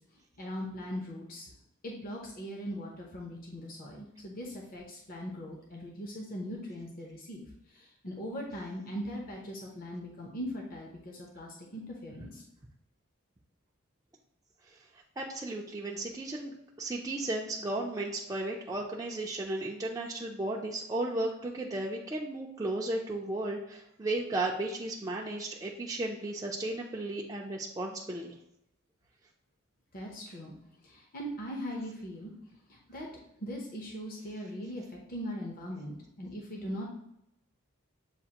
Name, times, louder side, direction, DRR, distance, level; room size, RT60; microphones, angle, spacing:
voice 1, 0.4-1.5 1.8-12.4 29.9-30.5 30.8-32.3 32.7-33.1 33.4-36.9, equal, 40° left, -1 dB, 0.7 m, -40 dB
voice 2, 15.2-28.3, right 2 dB, 15° right, -3 dB, 0.4 m, -34 dB
7.4 x 2.5 x 2.8 m, 0.80 s
head